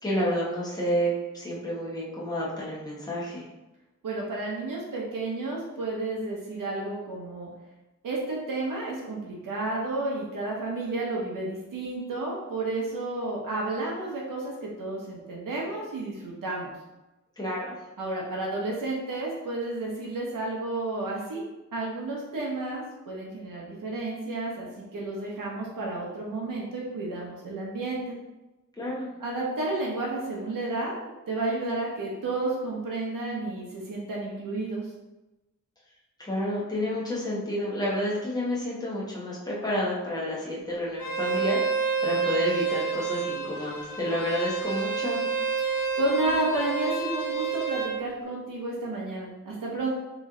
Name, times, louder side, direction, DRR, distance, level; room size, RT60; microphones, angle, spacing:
voice 1, 0.0-3.4 17.4-17.7 28.8-29.1 36.2-45.2, equal, 10° left, -7 dB, 1.1 m, -30 dB
voice 2, 4.0-7.5 8.0-16.7 18.0-21.4 21.7-28.0 29.2-34.9 45.6-49.9, right 2 dB, 85° right, -3 dB, 0.9 m, -31 dB
Bowed string instrument, 41.0-47.9, right 5 dB, 90° left, 1.3 m, -29 dB
3.1 x 3.1 x 3.7 m, 1.0 s
wide cardioid pair, 150°, 32 cm